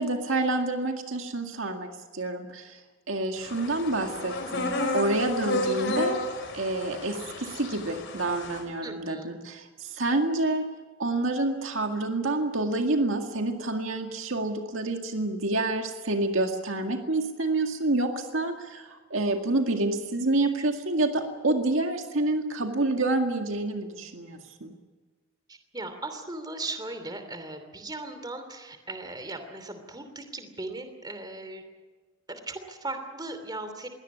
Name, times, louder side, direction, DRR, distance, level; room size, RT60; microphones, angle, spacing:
voice 1, 0.0-2.8 3.1-6.2 6.5-10.6 11.0-24.7, right 2 dB, 65° right, 4 dB, 2.0 m, -28 dB
sound 1, 3.4-8.6, left 1 dB, 55° left, 5.0 m, -32 dB
voice 2, 8.8-9.3 25.5-31.6 32.3-33.9, right 2 dB, 20° right, 8 dB, 2.8 m, -38 dB
22.5 x 17.5 x 9.5 m, 1.3 s
head